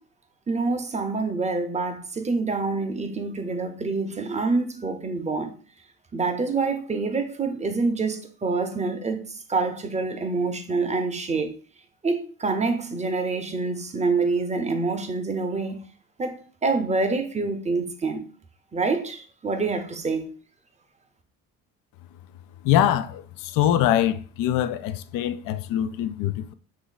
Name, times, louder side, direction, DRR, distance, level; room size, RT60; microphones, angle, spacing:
voice 1, 0.5-5.6 6.1-11.5 12.0-15.9 16.2-18.2 18.7-20.3, right 3 dB, 20° right, 0.6 m, -26 dB
voice 2, 22.6-26.5, left 11 dB, 60° left, 0.5 m, -23 dB
3.0 x 2.6 x 3.9 m
supercardioid pair, 70°, 37 cm